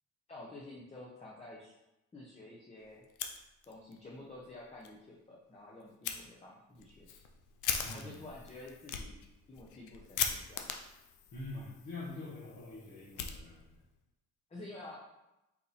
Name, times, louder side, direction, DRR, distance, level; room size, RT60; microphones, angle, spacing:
voice 1, 0.3-1.7 2.1-3.0 3.7-7.2 7.8-9.2 9.5-10.7 11.5-11.7 14.5-15.0, left 2 dB, 20° left, -4 dB, 0.8 m, -50 dB
Fire, 3.0-4.0 4.3-4.4 4.8-4.9 6.0-6.2 6.7-13.9, left 8 dB, 85° left, 0.6 m, -40 dB
voice 2, 7.8-8.2 11.3-13.6, left 2 dB, 65° left, -10 dB, 1.5 m, -45 dB
4.2 x 2.6 x 4.1 m, 0.94 s
cardioid pair, 90°, 30 cm